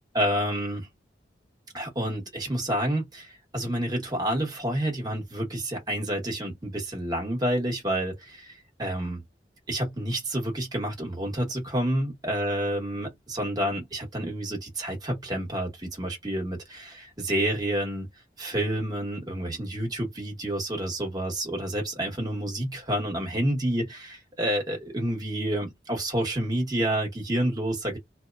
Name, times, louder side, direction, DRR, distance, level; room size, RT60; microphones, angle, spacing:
voice 1, 0.1-0.9 1.7-9.2 9.7-18.1 18.4-28.0, right 1 dB, 25° right, 1.0 m, -29 dB
2.8 x 2.0 x 2.3 m
head